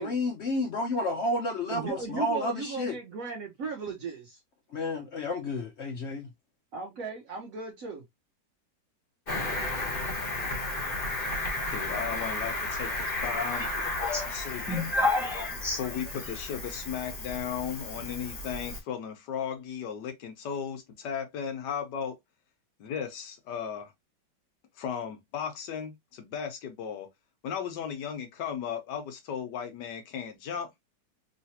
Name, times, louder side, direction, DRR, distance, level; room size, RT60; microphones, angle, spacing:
voice 1, 0.0-2.9 4.7-6.3, left 2 dB, 90° left, 0.5 m, -31 dB
voice 2, 1.7-4.4 6.7-8.0, right 5 dB, 65° right, 0.9 m, -36 dB
Cricket, 9.3-18.8, left 2 dB, 35° left, 1.1 m, -34 dB
voice 3, 11.6-13.6 14.3-14.8 15.8-22.2 22.8-23.9 24.8-27.1 27.4-30.7, left 7 dB, 70° left, 1.3 m, -36 dB
voice 4, 13.3-14.3 14.7-15.9, left 2 dB, ahead, 1.2 m, -30 dB
3.2 x 3.0 x 2.8 m
omnidirectional pair, 2.0 m